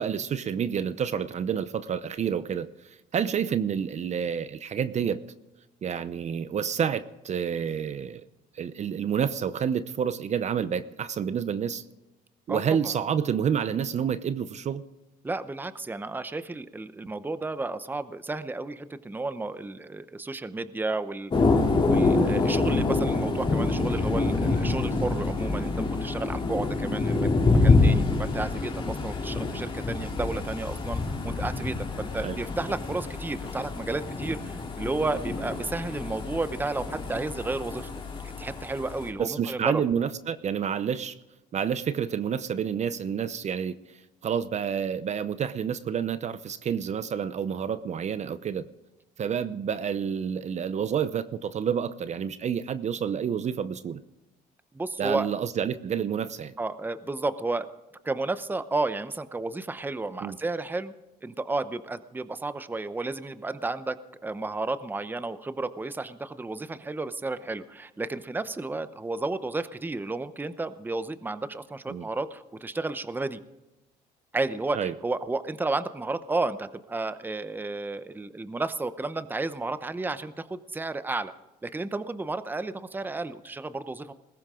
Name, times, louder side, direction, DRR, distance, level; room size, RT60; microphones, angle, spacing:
voice 1, 0.0-2.7 3.1-5.2 5.8-8.2 8.5-11.8 12.5-14.8 29.6-29.7 32.2-32.4 39.2-41.2 41.5-43.8 44.2-48.7 49.2-54.0 55.0-56.5 60.2-60.4 71.9-72.1 74.7-74.9, right 8 dB, 45° right, 13 dB, 0.8 m, -29 dB
voice 2, 12.5-12.9 15.2-21.3 21.8-37.9 38.2-39.8 54.7-55.3 56.6-57.7 58.0-60.9 61.2-64.0 64.2-73.4 74.3-81.3 81.6-84.1, right 3 dB, 10° right, 12 dB, 0.8 m, -32 dB
Thunder, 21.3-39.1, left 3 dB, 30° left, 3.1 m, -26 dB
20.5 x 16.5 x 3.8 m, 1.0 s
cardioid pair, 110°, 17 cm